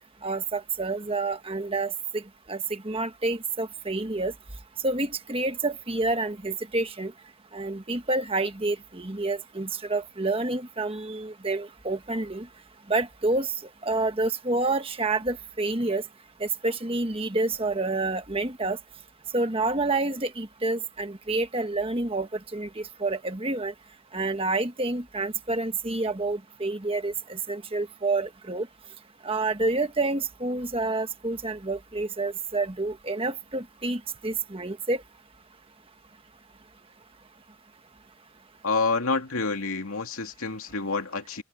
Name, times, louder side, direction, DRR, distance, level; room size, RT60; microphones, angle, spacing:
voice 1, 0.2-2.2 2.5-4.3 4.8-7.1 7.5-12.5 12.9-13.5 13.8-16.0 16.4-18.8 19.3-23.7 24.1-28.7 29.2-35.0, right 2 dB, 25° right, 1.5 m, -28 dB
voice 2, 38.6-41.4, left 3 dB, 80° left, 2.5 m, -28 dB
head